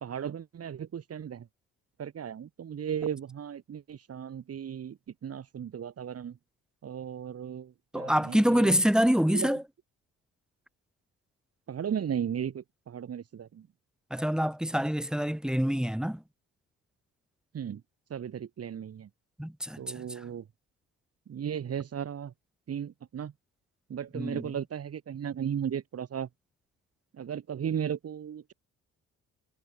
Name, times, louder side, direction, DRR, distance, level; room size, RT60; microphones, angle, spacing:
voice 1, 0.0-1.5 2.0-6.4 6.8-8.7 9.3-9.5 11.7-13.7 17.5-17.8 18.1-19.1 19.8-20.5 21.3-22.3 22.7-23.3 23.9-26.3 27.1-28.5, right 8 dB, 55° right, 2.7 m, -36 dB
voice 2, 7.9-9.6 14.1-16.2 19.4-20.0 24.1-24.4, equal, ahead, 2.2 m, -26 dB
cardioid pair, 90°, 30 cm